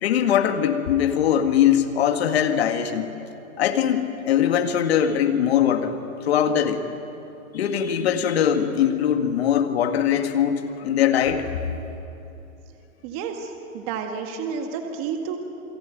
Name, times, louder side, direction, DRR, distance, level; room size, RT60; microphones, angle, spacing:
voice 1, 0.0-3.1 3.6-5.9 6.2-6.8 7.5-11.5, left 9 dB, 45° left, 6 dB, 2.2 m, -21 dB
voice 2, 13.0-15.4, right 6 dB, 25° right, 4 dB, 1.9 m, -30 dB
28.5 x 21.0 x 9.4 m, 2.9 s
hypercardioid pair, 165°, 44 cm